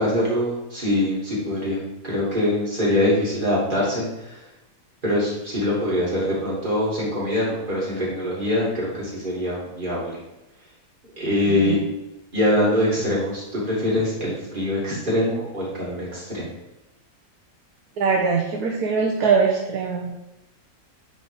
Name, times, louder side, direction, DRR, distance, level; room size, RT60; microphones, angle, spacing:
voice 1, 0.0-4.4 5.0-10.2 11.2-11.8 12.3-16.5, left 1 dB, 35° right, -7 dB, 2.8 m, -23 dB
voice 2, 18.0-20.2, right 5 dB, 90° right, -1 dB, 1.4 m, -22 dB
10.5 x 4.0 x 3.5 m, 0.96 s
omnidirectional pair, 1.6 m